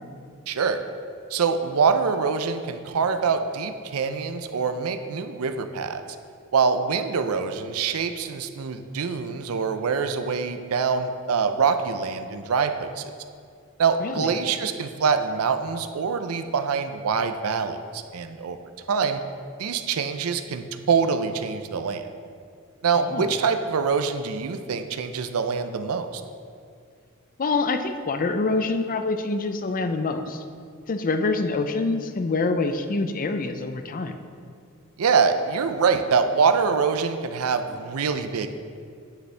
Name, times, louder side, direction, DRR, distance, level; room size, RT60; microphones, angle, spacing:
voice 1, 0.5-0.8 1.3-6.0 6.5-13.1 13.8-18.6 18.9-19.2 19.6-22.1 22.8-26.2 35.0-38.5, right 5 dB, 80° right, 9 dB, 0.5 m, -24 dB
voice 2, 14.0-14.4 23.0-23.3 27.4-30.4 30.9-34.2, left 3 dB, 40° left, 8 dB, 0.5 m, -26 dB
9.2 x 6.9 x 3.3 m, 2.3 s
head